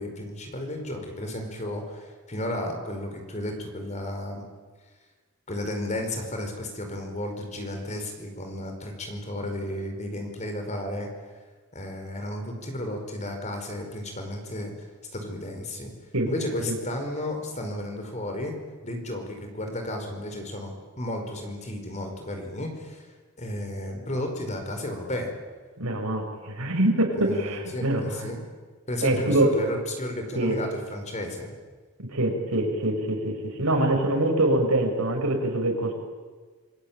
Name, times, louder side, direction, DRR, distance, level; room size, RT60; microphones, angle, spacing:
voice 1, 0.0-4.5 5.5-11.1 11.7-14.7 15.1-15.9 16.3-18.5 18.8-23.1 23.4-25.3 27.2-28.5 28.9-31.5, left 1 dB, 30° left, 4 dB, 5.1 m, -33 dB
voice 2, 25.8-28.3 29.0-29.5 30.4-30.6 32.1-35.9, right 1 dB, 85° right, 4 dB, 5.5 m, -24 dB
27.5 x 21.0 x 9.0 m, 1.4 s
head